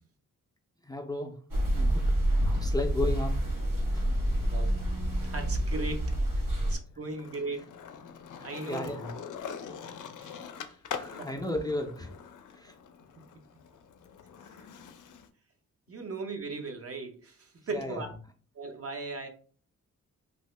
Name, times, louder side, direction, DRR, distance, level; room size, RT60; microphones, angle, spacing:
voice 1, 0.9-1.3 1.7-2.0 2.5-3.4 8.4-9.1 10.9-12.1 12.6-12.7 17.7-18.0, left 2 dB, 10° left, 3 dB, 0.5 m, -34 dB
sound 1, 1.5-6.8, right 1 dB, 75° right, 1.3 m, -27 dB
Skateboard, 3.1-4.7 5.1-15.3, left 7 dB, 65° left, 0.5 m, -44 dB
voice 2, 5.2-6.2 6.6-7.6 8.4-9.0 9.7-9.8 10.2-10.4 11.1-11.6 14.5-14.7 15.9-18.1 18.5-19.3, right 3 dB, 45° right, 5 dB, 0.7 m, -38 dB
2.8 x 2.7 x 3.2 m, 0.42 s
cardioid pair, 70°, 33 cm